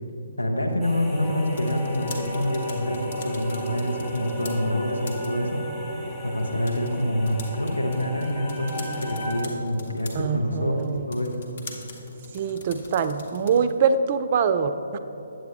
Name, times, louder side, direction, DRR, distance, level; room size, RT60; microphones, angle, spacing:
voice 1, 0.4-5.7 6.2-11.4, left 1 dB, 80° left, 2 dB, 1.1 m, -27 dB
sound 1, 0.8-9.4, equal, 10° left, 1.3 m, -34 dB
sound 2, 1.4-13.8, left 2 dB, 45° left, 1.2 m, -44 dB
voice 2, 10.1-11.1 12.3-15.0, right 6 dB, 35° right, 10 dB, 0.3 m, -24 dB
9.2 x 7.8 x 3.3 m, 3.0 s
figure-of-eight pair, 135°, 0 cm